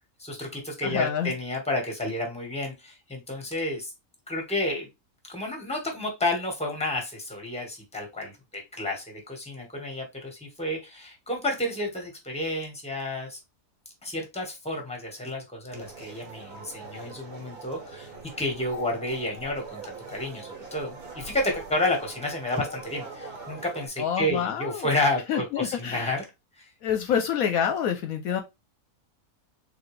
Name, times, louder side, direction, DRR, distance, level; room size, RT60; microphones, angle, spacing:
voice 1, 0.2-3.9 4.3-4.9 5.3-13.4 14.0-18.1 18.4-26.2 26.6-26.7, left 1 dB, 5° left, 1.3 m, -31 dB
voice 2, 0.8-1.3 24.0-24.9 25.3-26.1 26.8-28.4, left 8 dB, 70° left, 1.0 m, -27 dB
sound 1, 15.7-23.9, right 3 dB, 70° right, 2.1 m, -42 dB
4.0 x 3.4 x 3.2 m
omnidirectional pair, 1.6 m